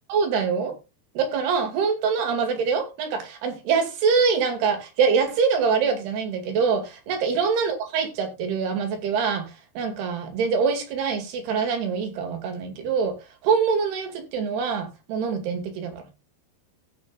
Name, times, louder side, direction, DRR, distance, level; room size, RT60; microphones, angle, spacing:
voice 1, 0.1-0.7 1.2-9.5 9.8-13.2 13.4-16.0, right 5 dB, 85° right, 4.1 m, -24 dB
16.5 x 7.4 x 2.3 m
omnidirectional pair, 4.5 m